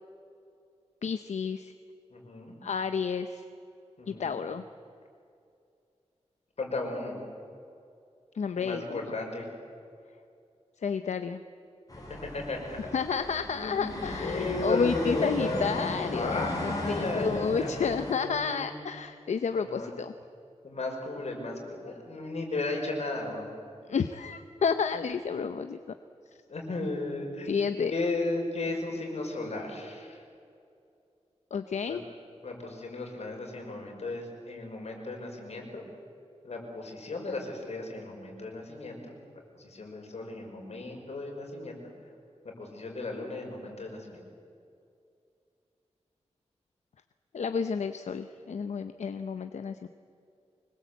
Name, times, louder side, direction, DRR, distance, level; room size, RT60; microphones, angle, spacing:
voice 1, 1.0-1.7 2.6-3.4 4.1-4.6 8.3-9.0 10.8-11.4 12.9-20.1 23.9-25.8 27.5-27.9 31.5-32.0 47.3-49.9, left 6 dB, 90° left, 9 dB, 0.8 m, -31 dB
voice 2, 2.1-2.5 4.0-4.4 6.6-7.2 8.6-9.5 12.2-12.8 13.6-18.8 19.5-19.9 20.6-23.5 26.5-30.2 31.9-32.0 32.4-35.9 36.4-39.2 39.6-41.8 42.4-44.2, left 2 dB, 70° left, 1 dB, 5.6 m, -35 dB
sound 1, 11.9-18.2, left 1 dB, 30° left, 8.0 m, -36 dB
25.0 x 21.5 x 8.3 m, 2.5 s
wide cardioid pair, 125°, 12 cm